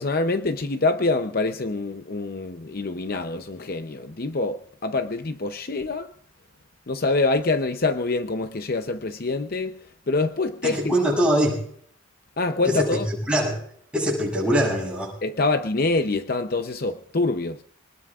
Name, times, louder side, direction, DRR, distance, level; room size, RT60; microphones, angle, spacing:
voice 1, 0.0-6.1 6.9-9.8 10.1-11.0 12.4-13.1 15.2-17.6, left 3 dB, 45° left, 0.7 m, -25 dB
voice 2, 10.6-11.6 12.6-13.0 13.3-13.6 13.9-15.1, equal, 5° right, 6.8 m, -22 dB
25.5 x 20.0 x 2.4 m
head